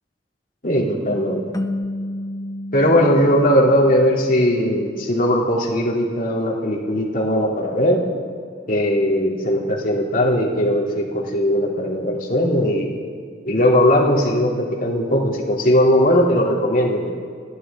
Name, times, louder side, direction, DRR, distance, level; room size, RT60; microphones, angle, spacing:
voice 1, 0.6-1.4 2.7-8.0 8.7-12.9 13.5-17.1, equal, 55° left, -2 dB, 2.6 m, -18 dB
sound 1, 1.5-4.7, left 1 dB, 20° left, 0.7 m, -31 dB
30.0 x 11.0 x 3.6 m, 2.2 s
head